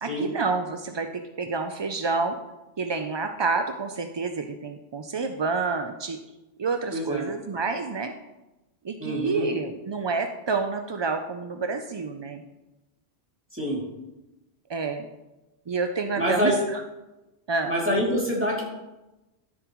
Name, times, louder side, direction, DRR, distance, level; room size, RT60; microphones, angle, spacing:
voice 1, 0.0-2.4 2.8-6.2 6.6-8.1 8.8-12.4 14.7-15.1 15.7-16.8 17.5-17.7, right 4 dB, 45° right, 6 dB, 0.3 m, -28 dB
voice 2, 6.9-7.3 9.0-9.5 13.5-13.8 16.2-16.5 17.7-18.6, equal, 10° right, -4 dB, 2.4 m, -26 dB
13.0 x 7.2 x 3.0 m, 1.0 s
omnidirectional pair, 1.1 m